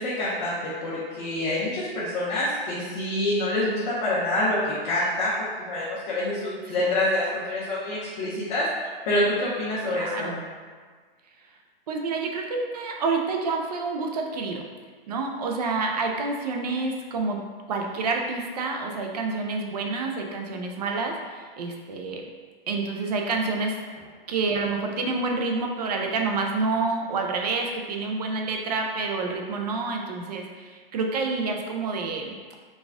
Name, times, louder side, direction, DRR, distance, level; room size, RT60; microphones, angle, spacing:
voice 1, 0.0-10.3, left 1 dB, 45° left, -9 dB, 0.9 m, -27 dB
voice 2, 9.9-10.5 11.9-14.6 15.1-22.3 22.7-23.8 24.3-32.4, right 3 dB, 45° right, 2 dB, 0.4 m, -28 dB
4.0 x 2.4 x 3.4 m, 1.5 s
hypercardioid pair, 150°, 29 cm